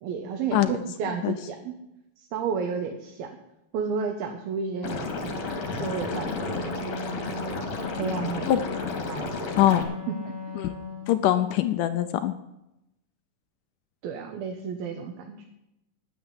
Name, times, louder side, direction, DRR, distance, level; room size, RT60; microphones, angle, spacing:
voice 1, 0.0-1.8 2.2-3.3 3.7-6.7 8.0-8.5 9.0-9.5 10.1-10.6 14.0-15.4, right 6 dB, 75° right, 3 dB, 2.9 m, -32 dB
Liquid, 4.8-9.8, left 4 dB, 50° left, 2.9 m, -32 dB
Wind instrument woodwind instrument, 5.2-11.3, left 2 dB, 10° left, 1.3 m, -39 dB
voice 2, 9.6-9.9 10.6-10.7 11.1-12.3, left 12 dB, 80° left, 10 dB, 1.9 m, -22 dB
9.6 x 9.2 x 9.7 m, 0.86 s
omnidirectional pair, 4.5 m